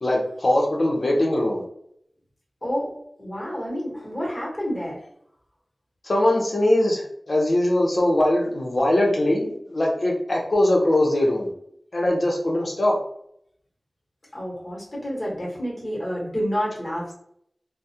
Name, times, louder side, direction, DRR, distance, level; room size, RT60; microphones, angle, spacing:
voice 1, 0.0-1.6 6.0-11.5 11.9-13.0, left 1 dB, 60° left, -2 dB, 0.7 m, -21 dB
voice 2, 2.6-2.9 3.2-5.0 14.3-17.1, equal, 30° left, -5 dB, 1.1 m, -29 dB
2.2 x 2.1 x 2.7 m, 0.70 s
wide cardioid pair, 50°, 0 cm